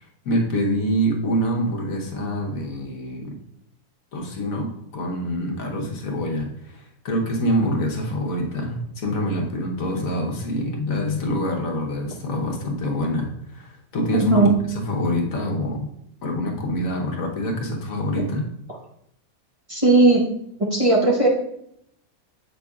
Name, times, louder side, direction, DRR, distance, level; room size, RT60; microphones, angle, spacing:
voice 1, 0.2-3.3 4.1-15.9 16.2-18.4, equal, 70° left, 0 dB, 1.5 m, -26 dB
voice 2, 14.1-14.5 18.2-18.3 19.7-20.2 20.7-21.3, right 2 dB, 25° right, -5 dB, 1.1 m, -17 dB
7.9 x 5.8 x 2.4 m, 0.74 s
omnidirectional pair, 1.5 m